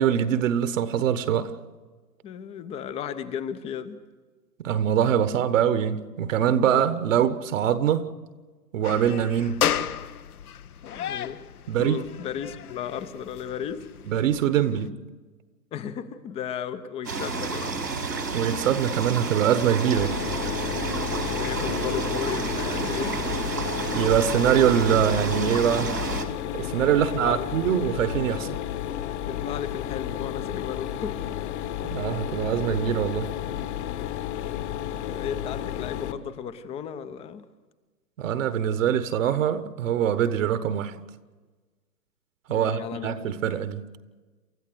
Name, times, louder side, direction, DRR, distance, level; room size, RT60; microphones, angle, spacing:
voice 1, 0.0-1.5 4.6-8.1 8.7-9.6 11.7-12.0 14.1-14.9 18.3-20.2 23.9-26.0 26.5-28.6 31.8-33.3 38.2-40.9 42.5-43.8, right 9 dB, 50° right, 1.3 m, -23 dB
voice 2, 2.2-4.0 6.6-6.7 10.9-11.4 11.8-13.9 15.7-17.9 21.2-23.4 27.0-27.6 29.2-31.4 35.1-37.4 42.5-43.3, left 8 dB, 10° left, 0.7 m, -35 dB
sound 1, 8.8-14.9, left 9 dB, 65° left, 1.1 m, -33 dB
sound 2, 17.0-26.2, right 4 dB, 90° right, 3.8 m, -30 dB
Mechanisms, 19.9-36.1, left 11 dB, 45° left, 1.7 m, -32 dB
28.5 x 14.0 x 7.9 m
hypercardioid pair, 130°, 49 cm